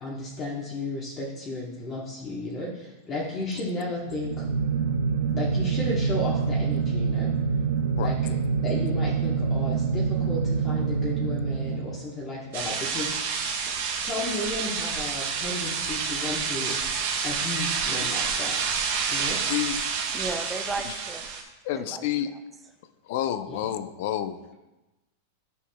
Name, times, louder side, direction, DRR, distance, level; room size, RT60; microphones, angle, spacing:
voice 1, 0.0-4.5 5.3-7.3 8.0-8.4 8.6-13.1 13.9-16.8 17.2-18.6 19.1-19.4 23.5-23.6, left 2 dB, 20° left, -5 dB, 1.1 m, -33 dB
sound 1, 4.0-12.4, right 5 dB, 85° right, 0.6 m, -26 dB
sound 2, 12.5-21.4, right 6 dB, 65° right, 1.4 m, -29 dB
voice 2, 19.5-19.8 20.8-21.0 21.6-22.3 23.1-24.5, left 11 dB, 50° left, 12 dB, 0.5 m, -29 dB
voice 3, 20.1-21.3 21.7-22.0, right 3 dB, 10° right, 5 dB, 0.6 m, -34 dB
10.0 x 6.2 x 2.3 m, 1.0 s
supercardioid pair, 165°, 0 cm